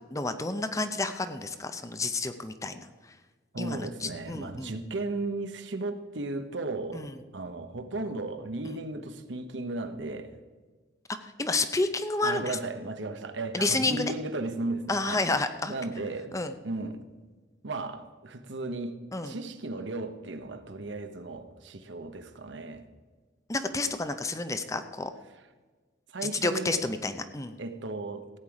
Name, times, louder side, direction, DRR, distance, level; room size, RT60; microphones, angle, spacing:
voice 1, 0.1-2.9 3.6-4.7 6.9-7.2 8.7-8.8 11.2-12.6 13.5-14.1 14.9-15.7 16.3-16.5 19.1-19.4 23.5-25.1 26.4-27.6, left 2 dB, 15° left, 9 dB, 0.6 m, -30 dB
voice 2, 3.5-7.1 7.3-10.4 12.2-16.4 16.6-17.0 17.6-22.8 26.1-26.8 27.6-28.2, right 2 dB, 75° right, 8 dB, 1.0 m, -35 dB
15.5 x 8.9 x 4.9 m, 1.4 s
head